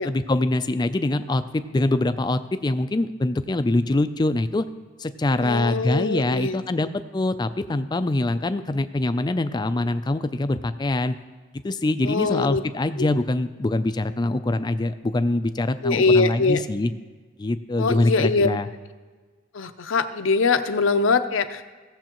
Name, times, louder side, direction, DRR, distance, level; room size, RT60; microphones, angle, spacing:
voice 1, 0.0-4.7 5.0-6.9 7.1-11.1 11.6-16.9 17.4-18.7, left 2 dB, 20° left, 11 dB, 0.4 m, -24 dB
voice 2, 5.4-6.9 12.0-12.6 13.0-13.1 15.8-16.6 17.8-18.5 19.5-21.7, left 4 dB, 65° left, 10 dB, 0.6 m, -22 dB
16.5 x 7.1 x 3.0 m, 1.4 s
head